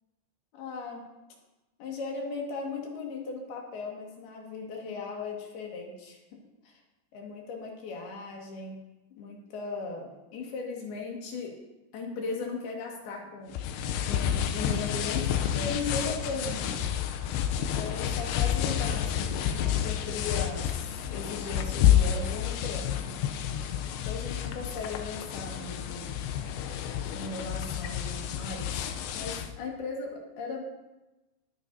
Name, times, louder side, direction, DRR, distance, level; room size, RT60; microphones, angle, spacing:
voice 1, 0.5-1.0 1.8-6.4 6.7-6.8 7.1-8.8 9.2-11.6 11.9-13.5 14.1-16.8 17.8-23.1 24.0-26.1 27.1-30.6, left 4 dB, 70° left, 0 dB, 3.7 m, -37 dB
sound 1, 13.5-29.5, left 10 dB, 90° left, 2.9 m, -29 dB
21.5 x 9.5 x 2.7 m, 1.0 s
omnidirectional pair, 4.8 m